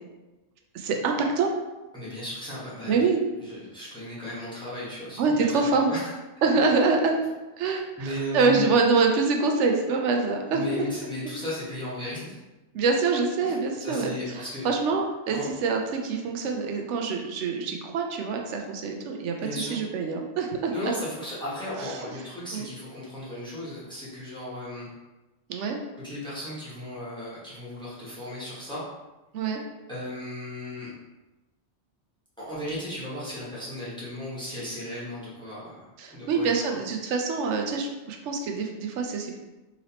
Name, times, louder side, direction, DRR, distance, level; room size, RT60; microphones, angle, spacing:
voice 1, 0.7-1.5 2.9-3.2 5.2-5.9 6.4-7.2 7.6-10.9 12.7-14.1 14.6-20.9 21.8-22.0 22.5-22.7 25.5-25.8 29.3-29.6 36.0-39.4, right 4 dB, 85° right, 2 dB, 0.9 m, -25 dB
voice 2, 1.9-3.1 3.4-6.1 7.7-8.7 10.5-12.4 13.4-14.7 15.3-15.4 19.4-19.8 20.7-24.9 26.0-28.8 29.9-30.9 32.4-36.8, left 1 dB, 5° left, -9 dB, 1.2 m, -35 dB
3.9 x 3.0 x 2.9 m, 1.1 s
omnidirectional pair, 1.2 m